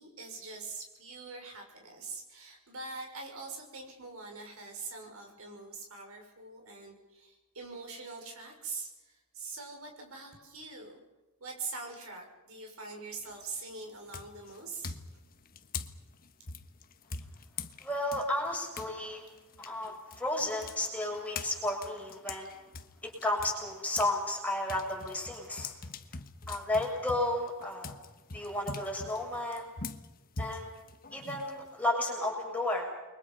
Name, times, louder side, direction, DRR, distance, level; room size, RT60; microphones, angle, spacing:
voice 1, 0.0-11.0 11.4-14.9, right 4 dB, 70° right, 2 dB, 6.1 m, -43 dB
sound 1, 13.2-13.6 14.1-18.9 19.3-24.2 24.5-31.9, left 4 dB, 40° left, 1.3 m, -43 dB
voice 2, 17.8-19.2 19.6-22.5 23.0-25.7 26.5-27.9 28.3-29.7 30.4-30.7 31.1-32.9, left 1 dB, 5° left, -1 dB, 6.9 m, -33 dB
29.5 x 23.5 x 5.6 m, 1.1 s
head